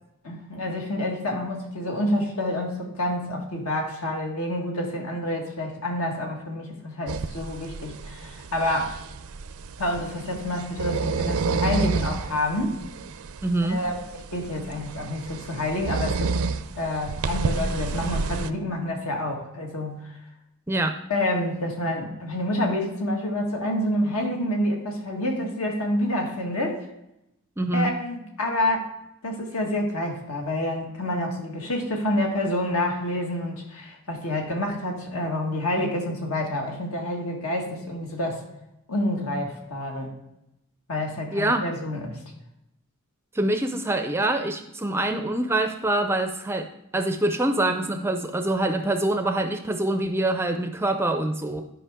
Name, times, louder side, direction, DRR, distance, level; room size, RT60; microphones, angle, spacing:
voice 1, 0.2-8.9 9.8-12.8 13.7-13.9 14.3-16.4 16.7-20.1 21.1-26.8 27.7-28.9 29.2-38.4 38.9-40.1 40.9-42.2, left 1 dB, 75° left, 1 dB, 1.7 m, -28 dB
sound 1, 7.1-18.5, right 4 dB, 75° right, 0.5 m, -30 dB
voice 2, 13.4-13.8 20.7-21.0 27.6-27.9 41.3-41.6 43.3-46.7 46.9-51.6, right 1 dB, 10° right, 6 dB, 0.4 m, -25 dB
11.0 x 5.2 x 3.6 m, 0.84 s
head